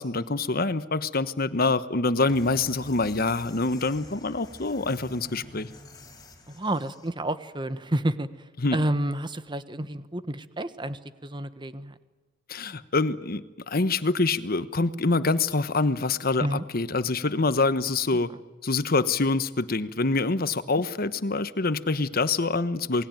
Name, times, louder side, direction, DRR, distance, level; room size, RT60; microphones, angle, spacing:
voice 1, 0.0-5.7 8.6-8.8 12.5-18.3 18.6-23.1, left 3 dB, 50° left, 13 dB, 1.2 m, -25 dB
sound 1, 2.3-7.1, left 1 dB, 20° left, 4.7 m, -48 dB
voice 2, 6.5-12.0 16.4-16.6 18.1-18.2, right 1 dB, 25° right, 12 dB, 1.3 m, -30 dB
28.0 x 20.0 x 9.1 m, 1.3 s
head